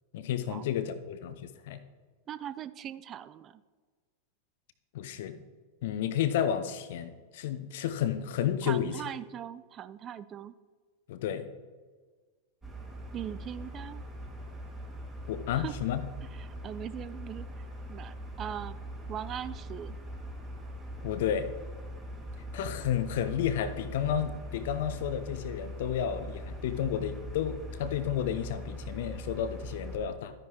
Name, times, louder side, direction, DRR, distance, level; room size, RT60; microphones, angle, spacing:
voice 1, 0.1-1.8 4.9-5.4 5.8-8.9 11.1-11.5 15.3-16.0 21.0-21.5 22.5-30.3, left 9 dB, 55° left, 12 dB, 0.7 m, -31 dB
voice 2, 2.3-3.6 8.6-10.5 13.1-14.0 15.5-15.8 16.3-17.5 17.9-18.8 19.1-20.0, right 10 dB, 30° right, 15 dB, 0.3 m, -40 dB
sound 1, 12.6-30.0, equal, 10° right, 2.1 m, -42 dB
12.5 x 9.9 x 3.0 m, 1.5 s
figure-of-eight pair, 90°, 0 cm